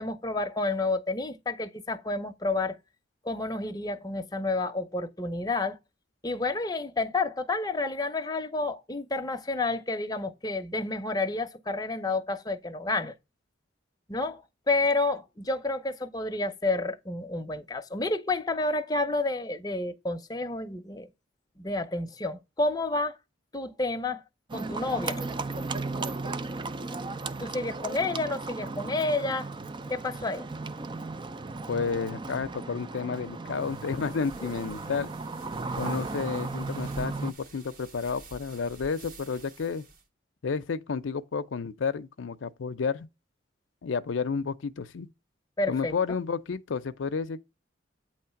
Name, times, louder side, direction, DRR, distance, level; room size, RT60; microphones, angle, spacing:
voice 1, 0.0-2.8 3.2-5.8 6.2-13.1 14.1-21.1 21.6-23.2 23.5-24.2 24.5-25.2 27.4-29.5 29.9-30.5 45.6-46.2, left 2 dB, 20° left, 0.7 m, -30 dB
Livestock farm animals working animals, 24.5-37.3, right 3 dB, 25° right, 0.4 m, -35 dB
voice 2, 31.7-35.1 35.8-39.9 40.4-43.1 43.8-45.1 45.7-47.4, left 5 dB, 80° left, 0.5 m, -31 dB
sound 1, 33.5-40.0, right 2 dB, 50° right, 1.5 m, -49 dB
8.6 x 3.2 x 5.7 m
head